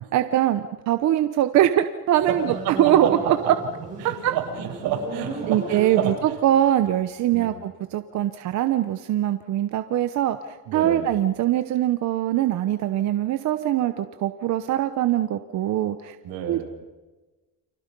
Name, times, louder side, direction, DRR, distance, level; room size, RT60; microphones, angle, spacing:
voice 1, 0.1-2.5 2.8-3.5 4.0-4.3 5.5-10.4 10.7-16.2 16.5-16.6, right 12 dB, 50° right, 9 dB, 0.9 m, -22 dB
Motorcycle, 2.1-6.5, right 3 dB, 20° right, 6.5 m, -36 dB
voice 2, 2.3-3.1 4.0-6.1 7.3-7.5 10.7-11.1 16.2-16.6, right 8 dB, 80° right, 2 dB, 6.2 m, -29 dB
30.0 x 25.5 x 5.3 m, 1.2 s
cardioid pair, 175°, 38 cm